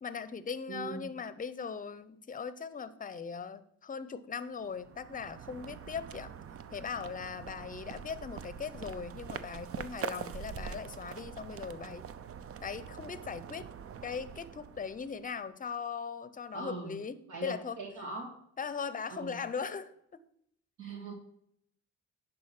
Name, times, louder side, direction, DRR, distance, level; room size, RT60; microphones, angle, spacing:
voice 1, 0.0-6.3 6.7-12.1 12.6-13.7 14.0-17.8 18.6-20.2, left 6 dB, 25° left, 14 dB, 0.7 m, -39 dB
voice 2, 0.7-1.0 16.5-16.9 17.3-18.3 19.1-19.4 20.8-21.1, right 3 dB, 75° right, -2 dB, 2.2 m, -41 dB
sound 1, 4.6-15.4, right 7 dB, 50° right, 0.6 m, -44 dB
10.5 x 4.0 x 6.0 m, 0.73 s
cardioid pair, 90°, 30 cm